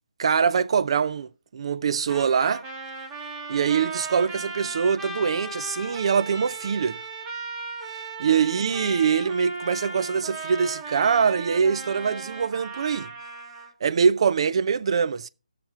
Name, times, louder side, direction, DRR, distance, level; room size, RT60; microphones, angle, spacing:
voice 1, 0.2-2.6 3.5-7.0 8.2-13.1 13.8-15.3, right 6 dB, 45° right, 0.5 m, -23 dB
Trumpet, 2.1-13.7, right 3 dB, 20° right, 1.5 m, -37 dB
17.0 x 6.8 x 3.6 m
figure-of-eight pair, 155°, 4 cm